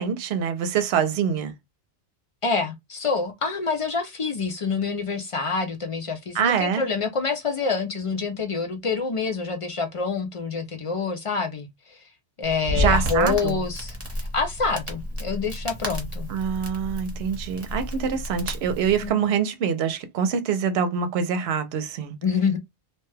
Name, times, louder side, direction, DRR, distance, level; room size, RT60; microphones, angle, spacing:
voice 1, 0.0-1.5 6.3-6.8 12.7-13.6 16.3-22.1, right 7 dB, 70° right, 0.8 m, -25 dB
voice 2, 2.4-12.0 12.4-16.3 19.0-19.3 22.2-22.6, left 4 dB, 60° left, 0.3 m, -27 dB
Crackle, 12.4-19.1, left 1 dB, 15° right, 1.0 m, -31 dB
2.8 x 2.2 x 3.2 m
omnidirectional pair, 1.2 m